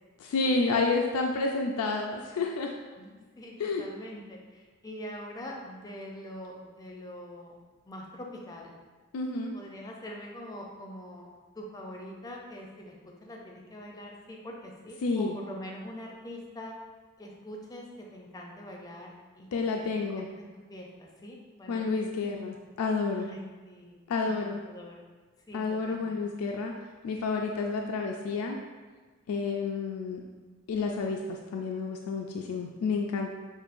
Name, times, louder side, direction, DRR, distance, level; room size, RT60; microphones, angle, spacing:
voice 1, 0.2-2.7 3.6-3.8 9.1-9.5 15.0-15.3 19.5-20.3 21.7-23.3 24.1-24.6 25.5-26.7 27.0-28.6 29.3-30.2 30.7-33.3, left 4 dB, 90° left, 2 dB, 0.3 m, -30 dB
voice 2, 3.0-7.5 7.9-8.7 9.5-11.3 11.6-16.8 17.2-19.5 19.7-20.0 20.3-21.9 23.2-23.4 23.6-24.0 24.2-25.0 25.5-26.2, equal, 20° left, -1 dB, 0.5 m, -44 dB
6.2 x 2.5 x 2.5 m, 1.4 s
head